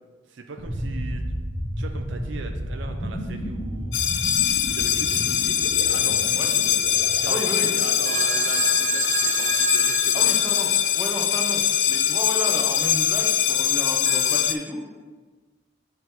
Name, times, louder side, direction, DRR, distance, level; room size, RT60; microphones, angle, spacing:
voice 1, 0.3-1.2 1.8-4.0 4.7-6.2 7.2-7.4 7.7-10.6, right 3 dB, 65° right, 5 dB, 0.5 m, -39 dB
sound 1, 0.6-9.4, equal, 25° left, 1.2 m, -33 dB
sound 2, 3.9-14.5, left 10 dB, 70° left, 0.4 m, -22 dB
voice 2, 7.3-7.7 10.1-10.7 11.0-14.9, equal, 10° right, -2 dB, 0.9 m, -32 dB
Telephone, 8.1-11.1 14.1-14.5, right 6 dB, 45° right, 0.9 m, -29 dB
8.7 x 3.3 x 4.4 m, 1.4 s
head